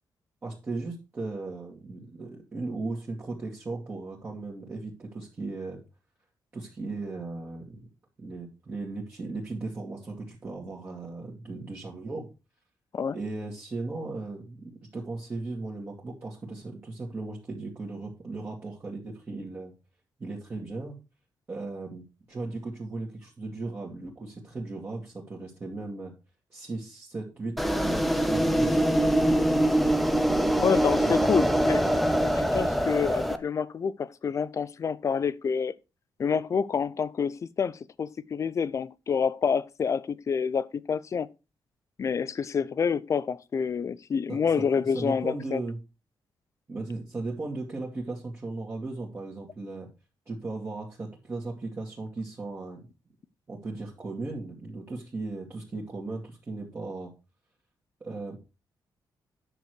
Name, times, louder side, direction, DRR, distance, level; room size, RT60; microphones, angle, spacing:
voice 1, 0.4-5.8 6.5-7.8 8.2-12.3 13.1-19.7 20.2-21.0 21.5-26.1 26.5-29.5 30.1-30.7 31.0-31.6 44.3-45.8 46.7-49.9 50.3-52.9 53.5-57.1 58.0-58.4, right 3 dB, 30° right, 2.1 m, -37 dB
sound 1, 27.6-33.4, right 1 dB, ahead, 0.7 m, -24 dB
voice 2, 30.6-31.8 32.2-35.7 36.2-41.3 42.0-45.6, left 6 dB, 40° left, 0.5 m, -28 dB
9.9 x 6.3 x 4.7 m
wide cardioid pair, 150°, 8 cm